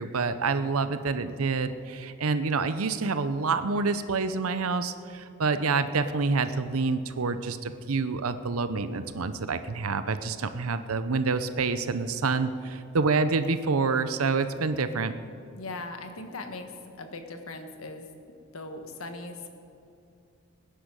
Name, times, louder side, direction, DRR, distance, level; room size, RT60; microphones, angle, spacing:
voice 1, 0.0-15.1, right 4 dB, 90° right, 11 dB, 0.7 m, -27 dB
voice 2, 15.6-16.7 17.0-18.1 18.5-19.5, left 2 dB, 80° left, 6 dB, 1.5 m, -39 dB
18.5 x 10.0 x 6.3 m, 2.6 s
head